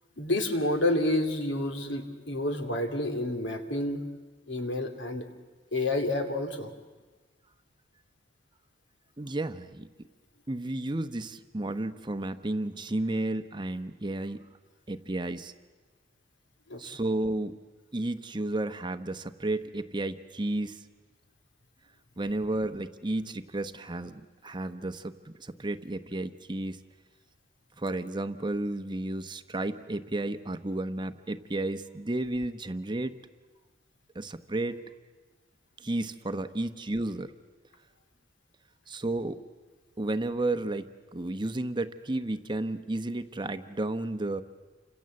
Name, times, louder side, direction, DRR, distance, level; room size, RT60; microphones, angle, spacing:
voice 1, 0.2-4.0 4.5-5.3 5.7-6.7 16.7-16.8, left 1 dB, 65° left, 6 dB, 2.9 m, -29 dB
voice 2, 9.2-9.9 10.5-14.4 14.9-15.5 16.8-17.6 17.9-20.8 22.2-26.8 27.8-33.1 34.1-34.8 35.8-37.3 38.9-39.4 40.0-40.9 41.1-44.4, right 2 dB, 25° right, 9 dB, 0.9 m, -32 dB
29.0 x 26.0 x 7.8 m, 1.3 s
head